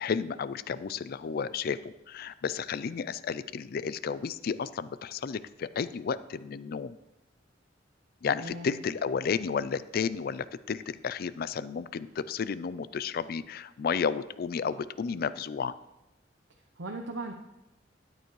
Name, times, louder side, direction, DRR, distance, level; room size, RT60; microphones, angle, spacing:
voice 1, 0.0-7.0 8.2-15.7, left 6 dB, 55° left, 16 dB, 0.4 m, -32 dB
voice 2, 8.4-8.8 16.8-17.3, right 2 dB, 90° right, 3 dB, 0.8 m, -37 dB
13.0 x 9.5 x 3.1 m, 0.94 s
head